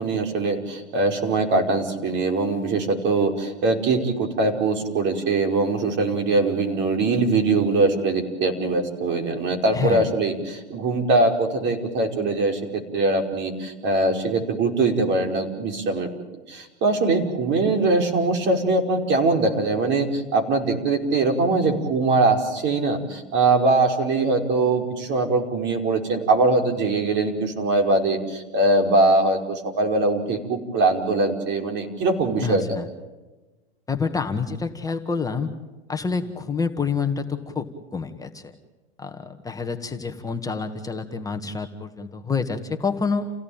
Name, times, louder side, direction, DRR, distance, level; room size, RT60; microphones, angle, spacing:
voice 1, 0.0-16.1 16.5-32.8, right 3 dB, 35° right, 4 dB, 5.3 m, -22 dB
voice 2, 9.7-10.1 32.4-32.9 33.9-35.5 35.9-37.7 37.9-38.5 39.0-43.3, left 5 dB, 10° left, 5 dB, 1.8 m, -27 dB
30.0 x 17.0 x 9.0 m, 1.1 s
hypercardioid pair, 115°, 32 cm